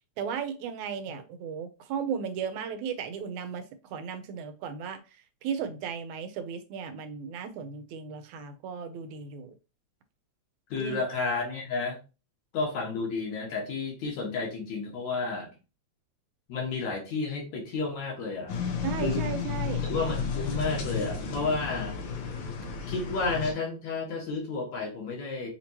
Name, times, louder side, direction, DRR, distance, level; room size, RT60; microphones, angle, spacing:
voice 1, 0.2-5.0 5.4-9.5 10.8-11.0 18.8-19.8, right 7 dB, 85° right, 8 dB, 2.1 m, -35 dB
voice 2, 10.7-12.0 12.5-15.6 16.5-18.6 19.0-19.3 19.8-22.0 22.9-25.5, left 3 dB, 75° left, -1 dB, 2.7 m, -31 dB
sound 1, 18.5-23.5, left 5 dB, 90° left, 2.5 m, -32 dB
5.8 x 2.9 x 2.9 m, 0.30 s
omnidirectional pair, 3.3 m